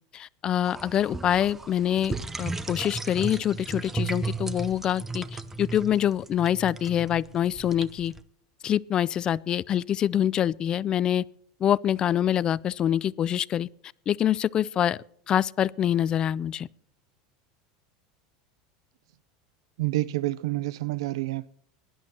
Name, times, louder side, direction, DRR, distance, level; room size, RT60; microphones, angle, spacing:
voice 1, 0.1-8.1 8.6-11.2 11.6-13.7 14.1-15.0 15.3-16.7, left 10 dB, 30° left, 0.4 m, -25 dB
sound 1, 0.6-8.2, right 3 dB, 10° right, 0.7 m, -35 dB
voice 2, 19.8-21.5, right 18 dB, 85° right, 0.4 m, -28 dB
22.0 x 11.0 x 2.9 m
supercardioid pair, 135°, 3 cm